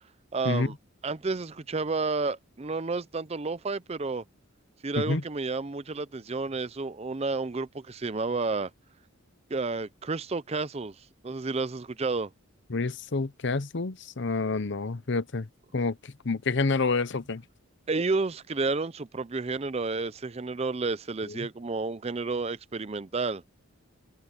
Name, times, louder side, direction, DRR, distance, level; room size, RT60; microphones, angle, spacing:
voice 1, 0.3-0.7 1.0-4.2 4.8-8.7 9.5-10.9 11.2-12.3 17.9-23.4, right 3 dB, 30° right, 0.5 m, -31 dB
voice 2, 12.7-15.5 15.7-15.9 16.2-17.4, left 3 dB, 55° left, 0.8 m, -28 dB
head